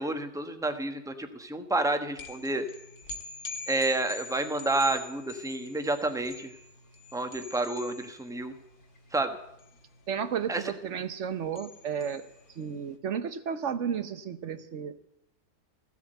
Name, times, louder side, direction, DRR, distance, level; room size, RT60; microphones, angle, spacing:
voice 1, 0.0-2.7 3.7-6.5 7.1-8.5 9.1-9.4 10.5-10.6, right 2 dB, 5° right, 7 dB, 0.9 m, -29 dB
sound 1, 2.1-12.8, left 3 dB, 60° left, 2.1 m, -45 dB
voice 2, 10.1-12.3 12.6-15.0, right 7 dB, 50° right, 12 dB, 1.1 m, -33 dB
15.5 x 8.2 x 7.8 m, 0.82 s
omnidirectional pair, 1.8 m